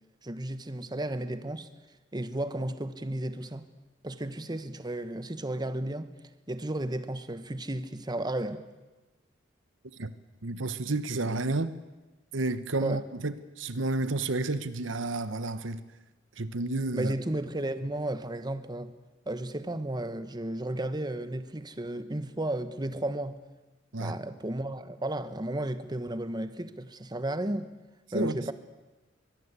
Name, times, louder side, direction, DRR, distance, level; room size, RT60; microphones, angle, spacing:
voice 1, 0.2-1.7 2.1-3.7 4.0-6.1 6.5-8.7 12.8-13.0 16.9-18.9 19.3-23.4 24.0-27.7 28.1-28.5, right 1 dB, 20° right, 1.2 m, -33 dB
voice 2, 10.4-11.7 12.3-15.8 16.4-17.1 23.9-24.2 28.1-28.4, right 2 dB, 85° right, 1.2 m, -31 dB
24.0 x 21.0 x 8.3 m
head